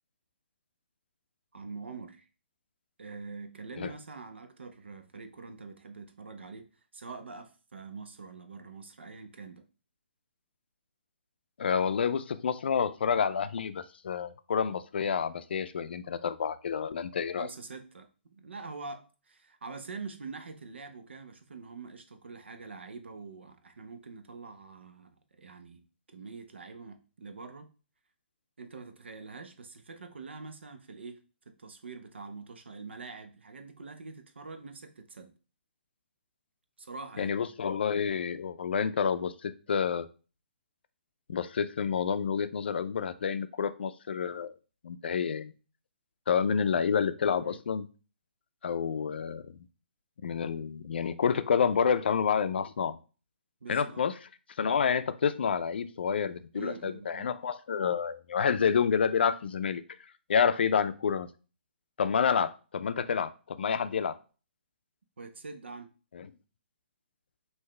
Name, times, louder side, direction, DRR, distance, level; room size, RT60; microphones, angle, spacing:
voice 1, 1.5-2.3 3.0-9.7 17.4-27.7 28.6-31.2 31.5-35.3 36.8-37.3 47.4-47.6 53.6-54.0 56.5-57.3 65.2-65.9, right 4 dB, 80° right, 0.8 m, -45 dB
voice 2, 11.6-17.5 37.2-40.1 41.3-44.6 44.8-45.5 46.3-47.9 48.6-49.6 50.2-53.0 53.7-54.1 54.6-59.8 60.3-61.3 62.0-64.1 66.1-66.3, left 6 dB, 65° left, 0.5 m, -29 dB
5.6 x 2.7 x 3.2 m
hypercardioid pair, 145°, 6 cm